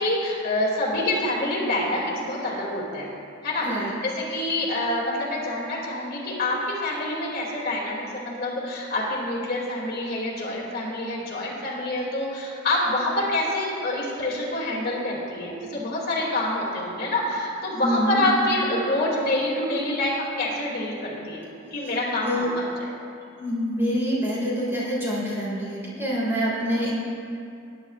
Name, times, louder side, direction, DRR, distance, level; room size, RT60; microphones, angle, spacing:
voice 1, 0.0-3.1 3.4-21.4 21.7-22.9, left 1 dB, 50° left, -5 dB, 2.4 m, -26 dB
voice 2, 17.8-18.2 22.2-22.5 23.4-26.9, equal, 10° right, -8 dB, 3.0 m, -26 dB
19.5 x 10.5 x 2.4 m, 2.5 s
head